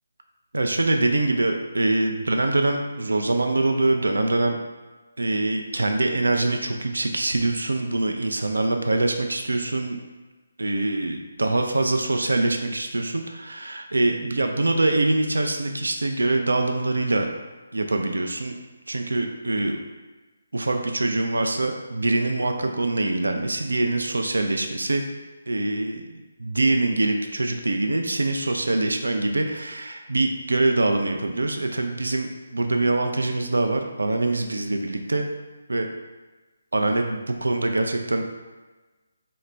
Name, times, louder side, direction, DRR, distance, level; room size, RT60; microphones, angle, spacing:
voice 1, 0.5-4.6 5.2-10.0 10.6-17.3 17.7-18.6 18.9-19.8 20.5-25.0 25.5-35.2 35.7-35.9 36.7-38.3, right 2 dB, 80° right, 4 dB, 0.4 m, -24 dB
3.8 x 2.2 x 4.3 m, 1.3 s
figure-of-eight pair, 150°, 0 cm